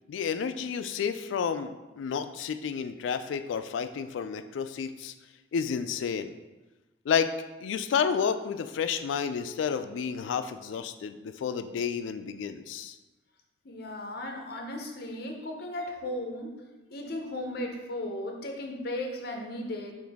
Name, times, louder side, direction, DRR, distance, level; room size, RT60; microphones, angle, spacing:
voice 1, 0.1-5.1 5.5-6.4 7.1-7.3 7.6-12.9, left 6 dB, 80° left, 10 dB, 0.3 m, -31 dB
voice 2, 13.6-16.5 16.9-19.9, left 1 dB, 55° left, 2 dB, 0.7 m, -36 dB
5.8 x 2.6 x 3.5 m, 1.1 s
head